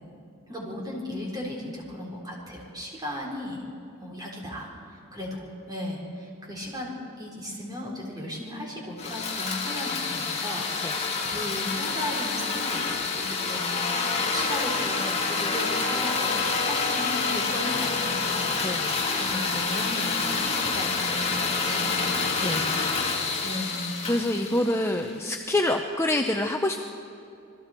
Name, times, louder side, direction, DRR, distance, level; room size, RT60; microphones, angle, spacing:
voice 1, 0.5-3.6 4.0-6.9 7.2-24.3, left 1 dB, 20° right, -2 dB, 4.5 m, -36 dB
sound 1, 9.0-25.2, left 4 dB, 30° left, 2.3 m, -28 dB
voice 2, 23.0-23.4 24.0-26.8, left 1 dB, 10° left, 3 dB, 0.7 m, -26 dB
27.5 x 21.0 x 4.5 m, 2.6 s
head